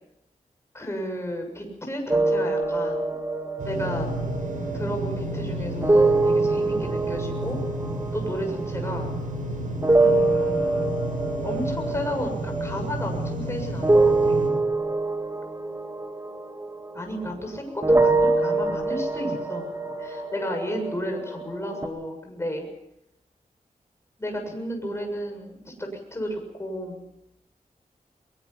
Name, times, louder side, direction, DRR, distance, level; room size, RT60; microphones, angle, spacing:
voice 1, 0.7-3.2 3.6-4.1 4.7-7.6 8.1-9.1 10.0-10.9 11.4-14.4 16.9-22.6 24.2-27.0, equal, 20° left, 3 dB, 7.1 m, -33 dB
sound 1, 2.1-9.5 9.8-17.5 17.8-21.9, right 2 dB, 20° right, 2.3 m, -25 dB
sound 2, 3.6-14.5, right 1 dB, 70° right, 7.1 m, -31 dB
22.5 x 22.5 x 5.9 m, 0.83 s
wide cardioid pair, 110°, 14 cm